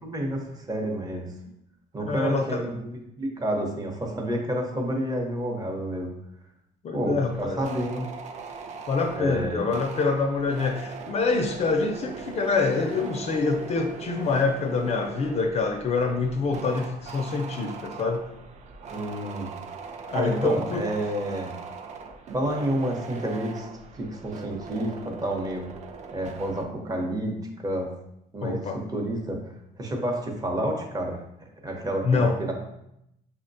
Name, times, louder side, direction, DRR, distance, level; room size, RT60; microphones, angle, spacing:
voice 1, 0.0-1.3 1.9-6.1 6.9-8.1 9.2-9.6 18.9-19.5 20.1-21.5 22.3-23.7 23.9-25.6 26.1-27.9 28.3-28.6 28.9-29.4 29.8-31.2 31.6-32.5, right 1 dB, 20° right, 1 dB, 0.8 m, -29 dB
voice 2, 2.0-2.6 6.8-7.6 8.9-18.2 20.1-20.9 28.4-28.8 32.0-32.4, left 4 dB, 40° left, 5 dB, 0.4 m, -26 dB
sound 1, 7.3-26.6, right 5 dB, 45° right, 0.4 m, -40 dB
5.3 x 2.1 x 2.6 m, 0.82 s
cardioid pair, 110°, 17 cm